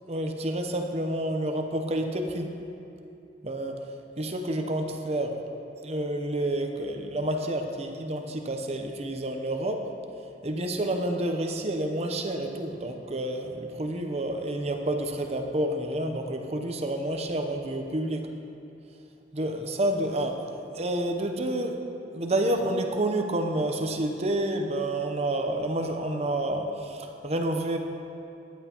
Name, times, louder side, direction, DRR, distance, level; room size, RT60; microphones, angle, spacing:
voice 1, 0.1-2.5 3.4-3.8 4.2-5.4 5.8-9.9 10.4-18.3 19.3-21.8 22.1-27.8, right 1 dB, 35° right, 4 dB, 0.8 m, -29 dB
13.5 x 10.5 x 3.0 m, 2.7 s
head